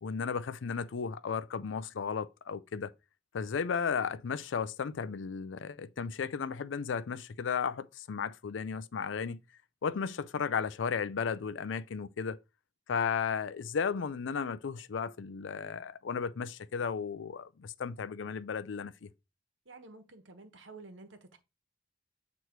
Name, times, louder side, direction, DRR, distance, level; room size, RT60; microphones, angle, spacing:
voice 1, 0.0-2.9 3.3-9.4 9.8-12.4 12.9-19.1, left 6 dB, 75° left, 0.4 m, -34 dB
voice 2, 19.6-21.4, right 3 dB, 80° right, 1.2 m, -51 dB
8.0 x 3.1 x 4.5 m
head